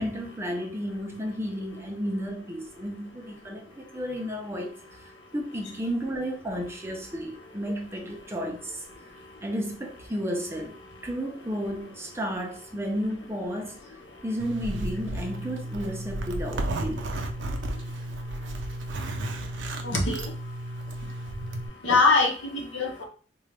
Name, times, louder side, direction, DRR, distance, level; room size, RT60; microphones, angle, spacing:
voice 1, 0.0-4.8 5.3-8.8 9.4-10.8 11.0-13.8 14.2-17.2, equal, 15° right, 0.5 m, -32 dB
Zipper (clothing), 14.4-21.7, right 1 dB, 75° right, 0.5 m, -33 dB
voice 2, 19.8-20.3 21.8-23.0, left 3 dB, 75° left, 0.9 m, -23 dB
3.7 x 2.2 x 3.3 m
head